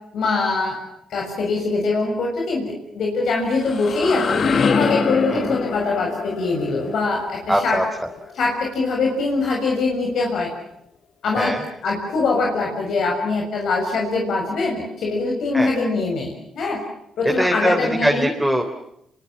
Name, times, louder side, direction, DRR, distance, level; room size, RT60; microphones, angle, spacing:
voice 1, 0.1-0.8 1.1-4.4 4.7-7.8 8.3-10.5 11.2-11.6 11.8-16.8 17.2-18.3, left 3 dB, 70° left, -1 dB, 6.8 m, -23 dB
sound 1, 3.3-9.0, left 5 dB, 55° left, 1.9 m, -25 dB
voice 2, 7.5-7.8 11.4-11.6 15.5-15.7 17.4-18.6, equal, 5° right, 2 dB, 3.6 m, -21 dB
27.5 x 24.0 x 7.3 m, 0.77 s
cardioid pair, 80°, 0 cm